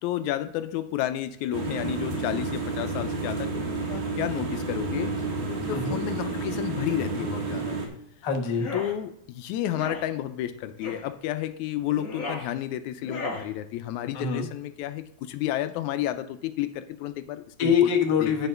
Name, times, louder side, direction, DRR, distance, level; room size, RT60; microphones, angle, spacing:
voice 1, 0.0-5.1 5.5-7.8 8.7-17.9 18.2-18.3, left 12 dB, 85° left, 11 dB, 1.9 m, -31 dB
sound 1, 1.5-7.9, right 3 dB, 85° right, 3.2 m, -30 dB
voice 2, 8.2-8.7 14.1-14.5 17.6-18.5, left 7 dB, 55° left, 2 dB, 1.3 m, -24 dB
sound 2, 8.5-8.9 9.7-10.0 10.8-11.1 11.9-12.5 13.0-13.5, left 2 dB, 30° left, 2.2 m, -35 dB
10.5 x 4.4 x 6.6 m, 0.74 s
omnidirectional pair, 3.4 m